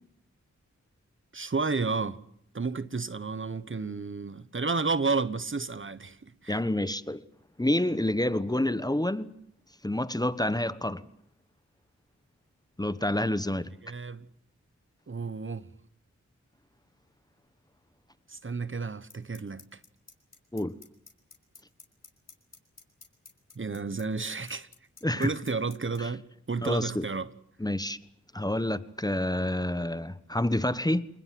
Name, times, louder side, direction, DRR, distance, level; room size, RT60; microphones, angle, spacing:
voice 1, 1.3-2.2 2.5-6.2 6.4-6.6 13.6-14.3 15.1-15.7 18.3-19.8 23.6-24.7 25.1-27.3, right 4 dB, 40° right, 1.2 m, -31 dB
voice 2, 6.5-7.2 7.6-9.3 9.8-11.0 12.8-13.7 20.5-20.8 25.0-25.3 26.0-26.1 26.6-27.0 27.6-28.0 28.3-31.1, left 1 dB, 15° left, 1.2 m, -28 dB
sound 1, 19.1-26.0, left 4 dB, 60° left, 5.0 m, -50 dB
27.5 x 20.5 x 7.8 m
cardioid pair, 50°, 30 cm